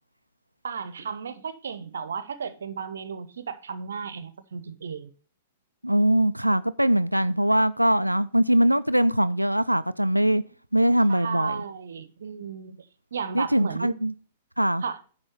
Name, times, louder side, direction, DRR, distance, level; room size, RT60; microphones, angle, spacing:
voice 1, 0.6-5.1 11.1-14.0 14.8-15.0, right 6 dB, 65° right, 0.8 m, -34 dB
voice 2, 5.8-10.4 10.7-11.6 13.3-14.1 14.6-14.8, right 1 dB, 90° right, 0.3 m, -22 dB
9.9 x 3.5 x 6.9 m
figure-of-eight pair, 105°, 0 cm